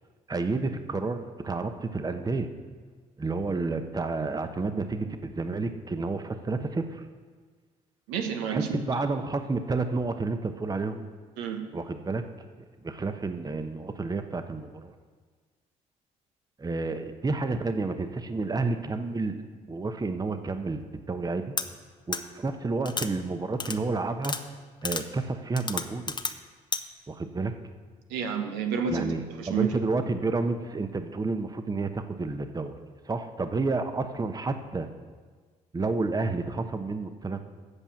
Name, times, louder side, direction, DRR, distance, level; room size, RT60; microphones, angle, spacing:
voice 1, 0.3-2.5 3.2-7.0 8.5-11.1 11.7-12.2 12.8-14.9 16.6-19.4 19.7-21.5 22.1-24.3 24.8-26.1 27.1-27.5 28.9-32.7 33.1-34.9 35.7-37.4, right 3 dB, 25° right, 8 dB, 0.9 m, -30 dB
voice 2, 8.1-8.8 11.4-11.6 28.1-29.8, right 7 dB, 80° right, 4 dB, 1.2 m, -30 dB
sound 1, 21.6-21.7 22.1-22.2 22.9-23.1 23.6-23.8 24.2-24.4 24.8-25.0 25.6-26.3 26.7-26.8, left 4 dB, 25° left, 0.9 m, -31 dB
8.2 x 7.2 x 7.1 m, 1.5 s
hypercardioid pair, 55°, 17 cm